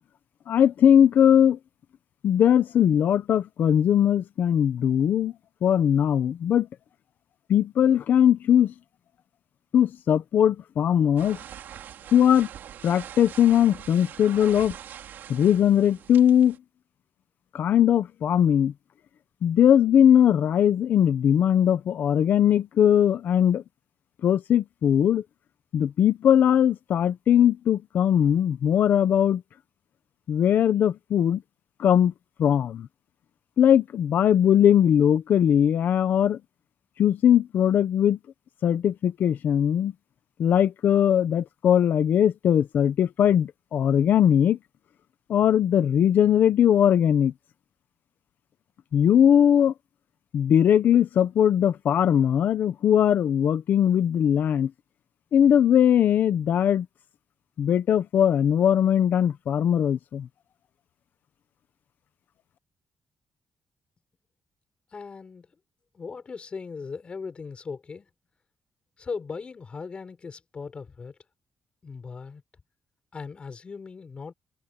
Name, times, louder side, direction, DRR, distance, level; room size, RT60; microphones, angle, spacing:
voice 1, 0.5-1.6 2.2-5.3 5.6-6.7 7.5-8.7 9.7-11.4 12.1-12.5 12.8-14.7 15.3-16.6 17.5-18.7 19.4-23.6 24.2-25.2 25.7-29.4 30.3-31.4 31.8-32.1 32.4-32.9 33.6-36.4 37.0-38.2 38.6-39.9 40.4-44.6 45.3-47.3 48.9-49.7 50.3-54.7 55.3-56.9 57.6-60.3, left 9 dB, 70° left, 1.2 m, -20 dB
sound 1, 11.2-16.6, right 10 dB, 85° right, 4.2 m, -43 dB
voice 2, 64.9-65.5 65.9-68.1 69.0-71.2 71.8-72.4 73.1-74.3, left 5 dB, 35° left, 6.5 m, -38 dB
wide cardioid pair, 145°, 3 cm